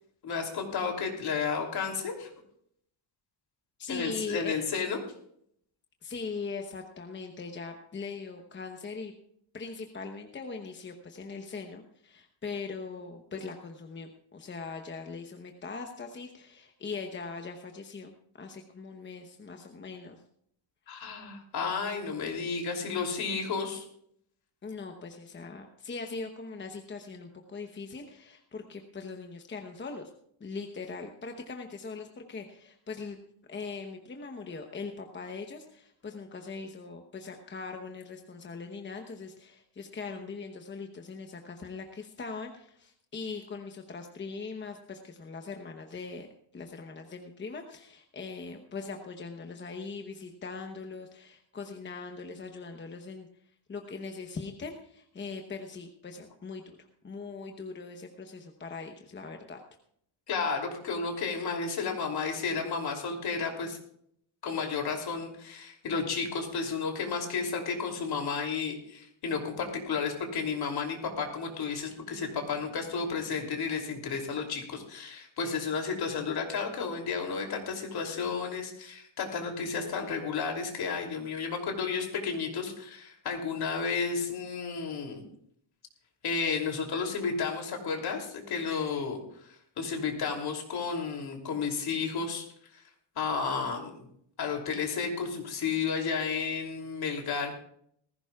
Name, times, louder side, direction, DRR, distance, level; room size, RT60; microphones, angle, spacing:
voice 1, 0.2-2.3 3.9-5.0 20.9-23.8 60.3-63.8 64.4-85.2 86.2-89.2 89.8-92.5 93.1-94.1 94.4-97.5, left 5 dB, 55° left, 2 dB, 3.0 m, -32 dB
voice 2, 3.8-4.6 6.0-9.1 9.5-20.2 20.9-21.0 24.6-30.1 30.4-33.2 33.5-46.3 46.5-53.3 53.7-56.8 57.0-59.6, left 4 dB, 25° left, 4 dB, 0.9 m, -41 dB
19.0 x 15.5 x 2.4 m, 0.68 s
cardioid pair, 170°, 47 cm